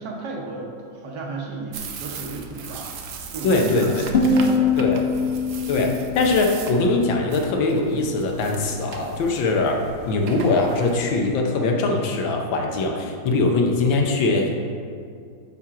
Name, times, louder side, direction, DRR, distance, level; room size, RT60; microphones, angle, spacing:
voice 1, 0.0-3.0 3.3-5.2 8.7-9.1, right 3 dB, 65° right, -2 dB, 1.6 m, -34 dB
sound 1, 1.7-11.2, right 4 dB, 90° right, 0.7 m, -38 dB
voice 2, 3.4-3.9 4.8-5.0 5.7-14.6, left 3 dB, 85° left, 2 dB, 1.6 m, -21 dB
sound 2, 4.1-7.1, left 4 dB, 45° left, 0.9 m, -23 dB
9.7 x 4.4 x 3.7 m, 2.2 s
omnidirectional pair, 2.1 m